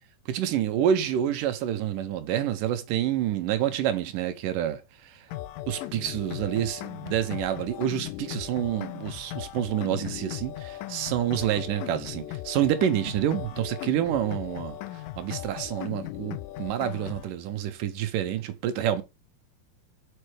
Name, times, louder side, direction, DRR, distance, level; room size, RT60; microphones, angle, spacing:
voice 1, 0.3-5.2 5.7-14.8 15.2-19.0, right 10 dB, 70° right, 2.4 m, -28 dB
sound 1, 5.3-17.3, left 15 dB, 80° left, 2.2 m, -38 dB
6.7 x 5.5 x 4.9 m
omnidirectional pair, 4.3 m